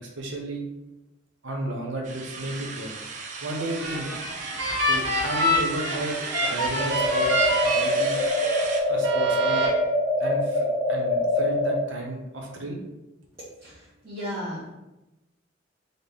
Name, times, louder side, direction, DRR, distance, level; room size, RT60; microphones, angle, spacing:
voice 1, 0.2-0.6 1.4-2.9 3.4-4.1 4.8-7.3 7.6-8.2 8.9-9.6 10.2-12.8, right 1 dB, 75° right, 0 dB, 0.8 m, -33 dB
sound 1, 2.0-8.8, right 4 dB, 40° right, 0.3 m, -36 dB
sound 2, 3.6-8.6 9.0-9.7, equal, 60° right, 1.2 m, -27 dB
sound 3, 6.8-11.8, left 1 dB, 60° left, 0.7 m, -24 dB
voice 2, 13.6-14.7, equal, 15° right, -14 dB, 1.0 m, -35 dB
4.0 x 2.1 x 3.4 m, 0.99 s
head